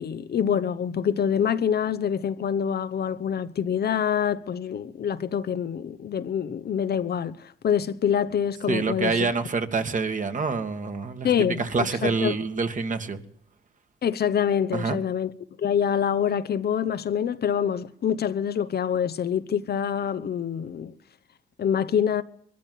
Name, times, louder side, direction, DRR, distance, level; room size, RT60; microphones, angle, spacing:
voice 1, 0.0-9.2 11.2-12.3 14.0-15.3 15.6-20.9 21.6-22.2, left 8 dB, 55° left, 1.0 m, -26 dB
voice 2, 8.7-11.3 11.6-13.2 14.7-15.0, right 4 dB, 40° right, 2.1 m, -26 dB
22.0 x 13.5 x 9.3 m
cardioid pair, 90°, 20 cm